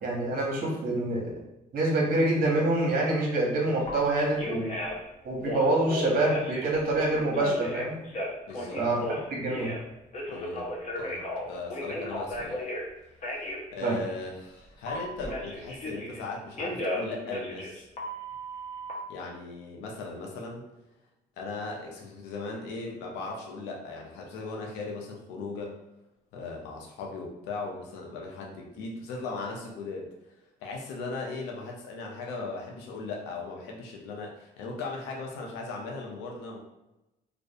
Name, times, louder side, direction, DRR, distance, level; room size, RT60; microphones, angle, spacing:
voice 1, 0.0-1.3 1.7-4.7 5.2-8.0 8.8-9.0 9.3-9.7 13.8-14.0, right 2 dB, 55° right, -2 dB, 0.9 m, -26 dB
Telephone, 3.9-4.0 4.4-5.0 5.4-6.8 7.3-9.8 10.1-12.9 13.2-13.6 14.9-16.2 16.6-18.9, left 1 dB, 40° left, 0.8 m, -34 dB
voice 2, 8.5-8.8 10.3-10.7 11.0-11.2 11.5-12.6 13.3-17.9 19.1-20.6 21.4-25.7 26.3-30.1 30.6-36.6, left 3 dB, 85° left, 0 dB, 0.6 m, -38 dB
2.5 x 2.1 x 2.7 m, 0.94 s
supercardioid pair, 70°, 17 cm